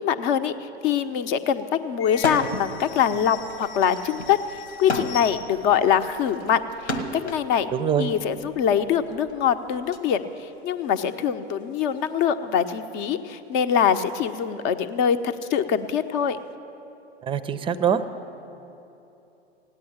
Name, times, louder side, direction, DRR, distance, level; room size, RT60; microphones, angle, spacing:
voice 1, 0.0-7.7 8.0-16.4, left 8 dB, 45° left, 10 dB, 0.9 m, -24 dB
sound 1, 0.8-5.8 6.1-6.2 6.4-7.8 8.2-8.3 8.6-9.1 9.9-10.0 10.6-11.4 11.9-12.0 13.1-13.3 13.8-15.2 15.5-16.5, left 7 dB, 65° left, 1.0 m, -44 dB
sound 2, 2.1-2.7 3.1-7.5 8.3-10.0, left 2 dB, 85° left, 1.7 m, -32 dB
voice 2, 7.7-8.1 17.2-18.0, right 8 dB, 15° right, 13 dB, 0.5 m, -23 dB
16.0 x 9.4 x 8.7 m, 2.9 s
hypercardioid pair, 110°, 33 cm